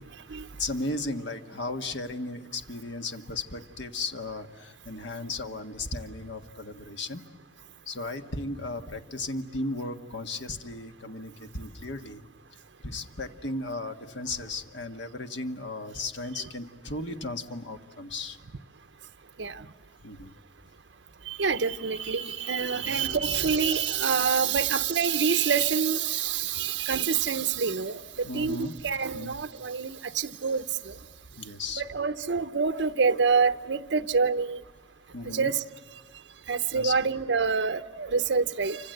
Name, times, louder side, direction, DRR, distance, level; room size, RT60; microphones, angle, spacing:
voice 1, 0.0-7.2 7.9-12.2 12.5-18.4 20.0-20.3 22.7-23.5 28.2-28.9 29.1-29.4 30.5-30.6 31.3-31.8 35.1-35.5 36.7-37.1, left 2 dB, 70° left, 7 dB, 1.5 m, -36 dB
voice 2, 21.3-28.0 28.3-30.9 31.8-34.6 35.3-35.6 36.5-38.8, right 5 dB, 70° right, 9 dB, 0.8 m, -26 dB
29.0 x 25.5 x 7.8 m, 1.4 s
head